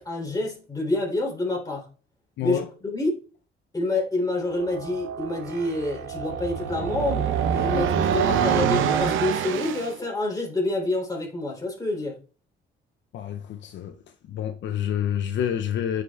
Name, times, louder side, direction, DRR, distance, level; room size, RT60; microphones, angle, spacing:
voice 1, 0.0-1.8 2.4-3.1 3.7-12.2, left 2 dB, 20° left, 3.3 m, -27 dB
sound 1, 4.5-9.9, right 8 dB, 85° right, 0.7 m, -26 dB
voice 2, 13.1-14.0 14.3-16.0, left 9 dB, 70° left, 0.5 m, -28 dB
9.4 x 5.1 x 2.3 m
cardioid pair, 90°, 20 cm